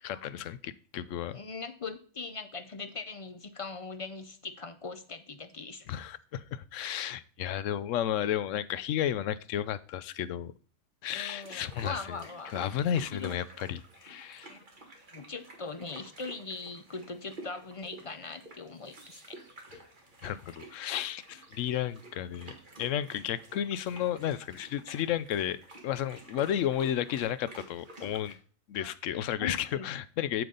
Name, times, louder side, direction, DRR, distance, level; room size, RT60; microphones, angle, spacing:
voice 1, 0.0-1.4 5.9-10.5 11.0-12.2 12.5-14.5 20.2-25.6 25.8-28.4 28.7-30.4, left 10 dB, 80° left, 16 dB, 0.9 m, -33 dB
voice 2, 1.3-5.9 11.1-12.5 13.2-13.3 14.5-14.6 15.1-19.4 28.8-28.9 29.4-29.9, left 4 dB, 50° left, 10 dB, 0.4 m, -41 dB
sound 1, 11.2-28.3, right 2 dB, 40° right, 1.8 m, -50 dB
7.9 x 6.9 x 3.8 m, 0.40 s
omnidirectional pair, 1.3 m